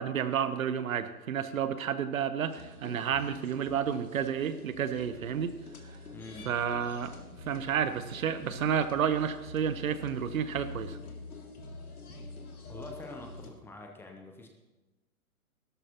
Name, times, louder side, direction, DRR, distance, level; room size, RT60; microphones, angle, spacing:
voice 1, 0.0-5.5 5.9-6.0 6.5-11.0, right 8 dB, 65° right, 12 dB, 0.9 m, -31 dB
sound 1, 2.5-13.5, left 2 dB, 80° left, 2.5 m, -46 dB
voice 2, 6.1-6.5 12.4-14.5, left 2 dB, 5° left, 2 dB, 0.6 m, -46 dB
16.5 x 12.5 x 2.9 m, 1.1 s
hypercardioid pair, 130°, 44 cm